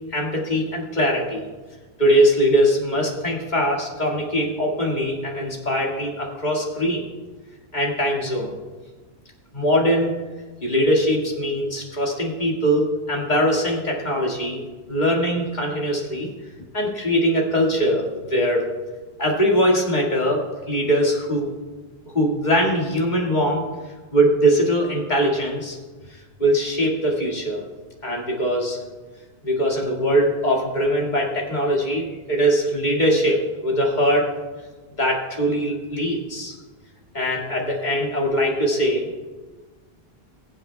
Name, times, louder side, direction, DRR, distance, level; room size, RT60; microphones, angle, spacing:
voice 1, 0.1-1.4 2.0-7.0 7.7-8.5 9.5-10.1 10.6-14.6 14.9-16.3 16.7-18.6 19.2-21.5 22.1-23.6 24.1-25.8 26.4-27.7 28.0-28.8 29.4-34.3 35.0-36.5 37.1-39.1, equal, 45° left, -2 dB, 2.0 m, -21 dB
21.5 x 7.6 x 2.2 m, 1.3 s
omnidirectional pair, 1.1 m